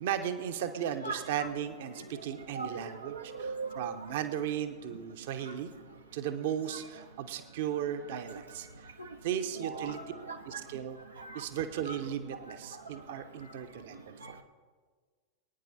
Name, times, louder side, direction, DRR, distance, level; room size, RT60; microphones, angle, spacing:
voice 1, 0.0-3.1 3.4-3.5 3.7-5.7 6.1-8.7 9.2-10.0 10.4-11.0 11.3-14.4, right 9 dB, 55° right, 8 dB, 1.0 m, -36 dB
voice 2, 1.0-1.5 2.0-2.1 2.5-3.9 6.7-6.8 8.1-8.2 9.0-9.1 9.4-10.6 11.2-11.4 11.9-12.0 14.2-14.4, right 3 dB, 80° right, 3 dB, 0.9 m, -40 dB
22.5 x 9.7 x 4.2 m, 1.5 s
figure-of-eight pair, 90°, 0 cm